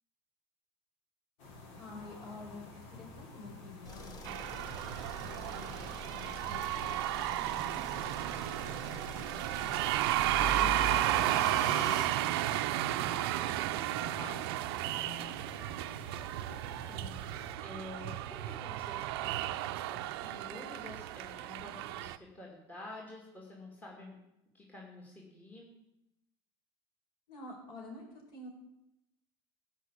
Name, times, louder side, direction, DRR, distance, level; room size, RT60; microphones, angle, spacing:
sound 1, 1.4-17.5, left 3 dB, 70° left, 3.7 m, -51 dB
voice 1, 1.7-4.5 5.1-9.1 9.3-10.0 10.5-11.3 11.6-15.7 27.3-28.5, left 3 dB, 50° left, 0 dB, 5.1 m, -50 dB
sound 2, 3.8-12.1, left 1 dB, 30° left, 1.9 m, -43 dB
sound 3, 4.2-22.2, right 15 dB, 85° right, 0.6 m, -33 dB
voice 2, 16.7-24.2 24.5-25.7, left 2 dB, 15° left, -3 dB, 2.5 m, -49 dB
14.5 x 5.6 x 8.3 m, 0.89 s
supercardioid pair, 135°, 12 cm